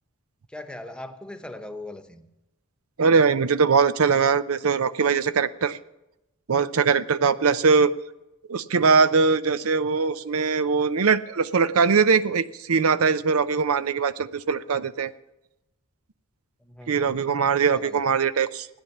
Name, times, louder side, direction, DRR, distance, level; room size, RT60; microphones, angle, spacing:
voice 1, 0.5-2.3 16.6-17.2 17.7-18.1, left 1 dB, 5° left, 1.0 m, -40 dB
voice 2, 3.0-5.8 6.5-7.9 8.5-15.1 16.9-18.7, right 5 dB, 85° right, 0.6 m, -21 dB
16.0 x 9.8 x 7.2 m
head